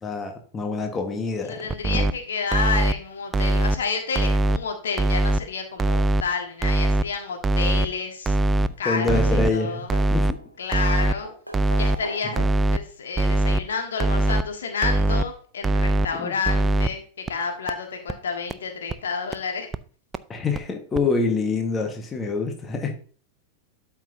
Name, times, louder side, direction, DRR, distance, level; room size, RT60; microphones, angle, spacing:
voice 1, 0.0-1.7 8.8-10.4 16.2-16.3 20.3-22.9, left 3 dB, 20° left, 4 dB, 1.5 m, -26 dB
voice 2, 1.4-8.4 8.8-9.9 10.6-11.3 11.8-19.7, left 5 dB, 65° left, 4 dB, 1.5 m, -30 dB
sound 1, 1.7-2.1 2.5-2.9 3.3-3.7 4.1-4.6 5.0-5.4 5.8-6.2 6.6-7.0 7.4-7.9 8.3-8.7 9.1-9.5 9.9-10.3 10.7-11.1 11.5-12.0 12.4-12.8 13.2-13.6 14.0-14.4 14.8-15.2 15.6-16.1 16.4-16.9 17.3-17.4 17.7-17.8 18.1-18.2 18.5-18.6 18.9-19.0 19.3-19.4 19.7-19.8 20.1-20.2 20.5-20.6 20.9-21.0, right 2 dB, 15° right, 0.4 m, -21 dB
sound 2, 8.7-9.3 9.5-10.7 11.2-12.8 14.0-14.1 15.7-15.8 16.1-16.2, equal, 90° right, 1.0 m, -39 dB
12.5 x 5.8 x 2.7 m, 0.42 s
figure-of-eight pair, 90°, 0 cm